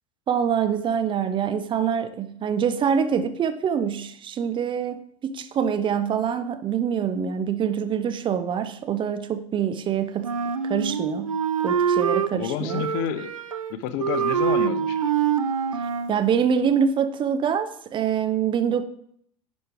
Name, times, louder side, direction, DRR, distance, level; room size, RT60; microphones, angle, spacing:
voice 1, 0.3-10.4 10.6-11.3 11.6-12.9 16.1-18.9, right 7 dB, 30° right, 0.6 m, -25 dB
Wind instrument woodwind instrument, 10.2-12.3 12.7-13.7 14.0-16.2, right 7 dB, 85° right, 0.5 m, -25 dB
voice 2, 12.3-13.3 13.7-15.1, left 8 dB, 55° left, 0.7 m, -29 dB
10.0 x 5.2 x 3.5 m
figure-of-eight pair, 75°, 17 cm